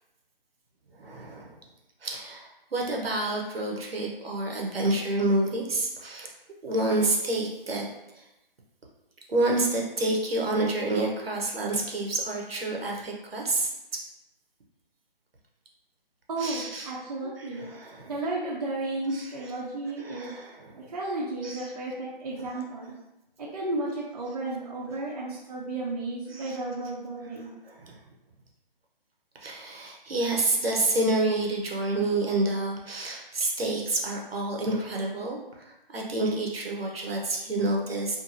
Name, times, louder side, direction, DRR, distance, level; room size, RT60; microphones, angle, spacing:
voice 1, 1.0-1.6 2.0-6.3 6.6-7.8 8.1-8.2 9.3-14.0 16.4-16.9 17.2-18.1 19.1-19.3 20.0-20.9 21.4-21.7 22.4-22.5 26.3-26.6 27.6-28.0 29.4-38.2, right 2 dB, 85° right, -1 dB, 0.8 m, -29 dB
voice 2, 16.3-17.7 18.1-20.3 20.8-22.9 23.4-27.5, right 2 dB, 40° right, -4 dB, 0.5 m, -33 dB
2.8 x 2.5 x 2.5 m, 0.93 s
figure-of-eight pair, 155°, 29 cm